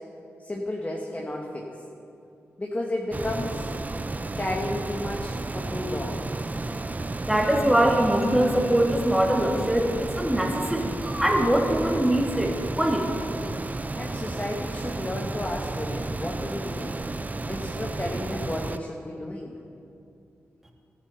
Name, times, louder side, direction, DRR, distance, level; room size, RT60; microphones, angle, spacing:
voice 1, 0.4-1.7 2.6-3.7 4.3-6.2 14.0-17.0 17.5-19.5, left 1 dB, 30° left, -1 dB, 1.6 m, -32 dB
sound 1, 3.1-18.8, right 2 dB, 30° right, 0.5 m, -32 dB
voice 2, 7.2-12.5 12.8-13.1, right 1 dB, 10° right, 0 dB, 2.5 m, -23 dB
13.5 x 9.7 x 5.8 m, 2.6 s
supercardioid pair, 40°, 6 cm